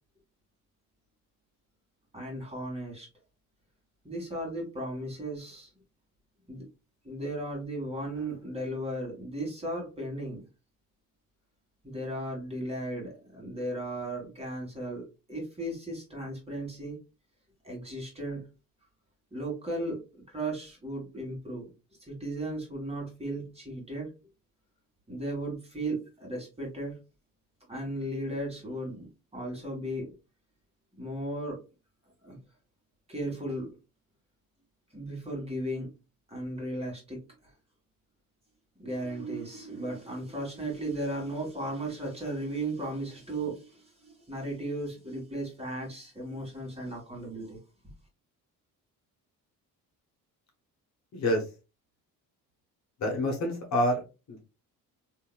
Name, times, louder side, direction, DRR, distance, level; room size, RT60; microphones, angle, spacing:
voice 1, 2.1-3.1 4.0-5.7 6.5-6.7 7.0-10.4 11.8-17.0 17.6-18.5 19.3-20.0 20.3-21.7 22.0-24.1 25.1-27.0 27.7-29.1 29.3-30.1 31.0-31.6 32.2-32.4 33.1-33.8 34.9-35.9 36.3-37.2 38.8-47.6, right 1 dB, 15° right, -1 dB, 1.6 m, -36 dB
voice 2, 53.0-54.0 54.3-54.4, left 1 dB, 50° left, 1 dB, 1.1 m, -27 dB
2.8 x 2.8 x 2.2 m, 0.28 s
cardioid pair, 95°, 35 cm